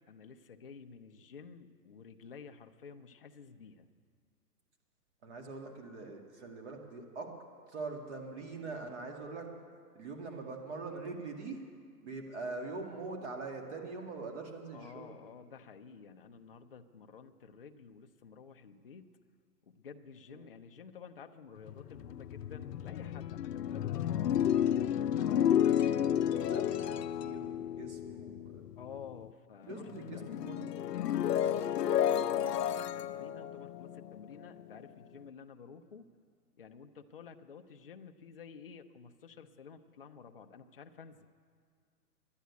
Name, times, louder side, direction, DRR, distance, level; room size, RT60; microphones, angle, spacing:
voice 1, 0.1-3.9 14.7-19.1 19.6-24.2 25.3-26.1 28.8-30.2 31.2-36.1 36.6-41.3, left 6 dB, 40° left, 6 dB, 0.4 m, -52 dB
voice 2, 5.2-7.3 7.7-9.5 9.9-11.6 12.0-15.1 20.3-20.4 25.3-28.6 29.7-30.8, right 3 dB, 45° right, 3 dB, 2.0 m, -43 dB
sound 1, 21.6-29.3 29.6-34.8, left 10 dB, 80° left, 0.6 m, -32 dB
11.5 x 9.1 x 9.4 m, 2.1 s
hypercardioid pair, 165°, 48 cm